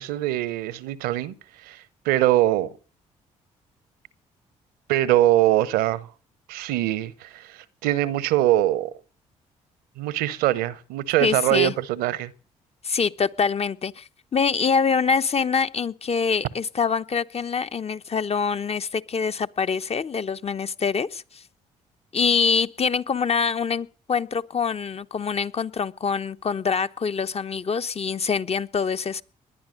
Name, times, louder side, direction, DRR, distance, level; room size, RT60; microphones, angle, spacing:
voice 1, 0.0-1.3 1.6-2.7 4.9-6.1 6.5-8.9 10.0-12.3, right 14 dB, 80° right, 1.0 m, -23 dB
voice 2, 11.2-11.7 12.8-21.4 22.1-29.2, left 5 dB, 40° left, 1.0 m, -25 dB
20.0 x 10.5 x 6.5 m
hypercardioid pair, 50°, 16 cm